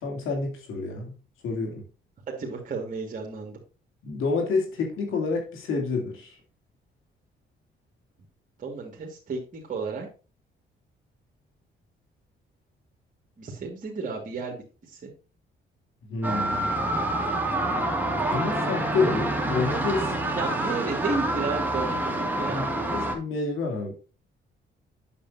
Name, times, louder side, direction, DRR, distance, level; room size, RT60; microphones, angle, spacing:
voice 1, 0.0-1.1 1.4-1.8 4.0-6.4 16.1-16.7 18.3-20.1 22.5-23.9, left 4 dB, 85° left, 1 dB, 2.7 m, -28 dB
voice 2, 2.4-3.6 8.6-10.1 13.4-14.6 14.9-15.1 20.3-22.8, right 4 dB, 40° right, 0 dB, 2.0 m, -33 dB
sound 1, 16.2-23.1, right 1 dB, 10° right, 1.9 m, -27 dB
8.5 x 6.7 x 2.6 m, 0.35 s
cardioid pair, 90°, 20 cm